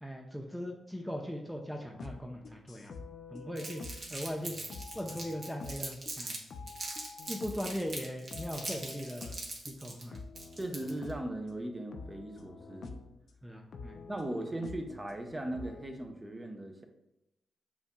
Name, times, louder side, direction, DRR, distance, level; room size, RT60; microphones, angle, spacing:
voice 1, 0.0-2.9 3.3-3.8 4.1-4.5 4.9-6.4 7.3-9.4 9.6-10.2 13.4-14.0, equal, ahead, 1 dB, 0.6 m, -39 dB
sound 1, 1.8-8.0 8.3-9.8 10.1-11.4 11.9-13.2 13.7-15.9, left 4 dB, 65° left, 0.4 m, -47 dB
Crumpling crinkling, 3.6-6.4 6.7-11.1, right 2 dB, 55° right, 1.2 m, -41 dB
voice 2, 10.6-12.9 14.1-16.8, right 1 dB, 25° right, 4 dB, 0.8 m, -38 dB
7.0 x 2.7 x 2.2 m, 0.89 s
supercardioid pair, 45°, 0 cm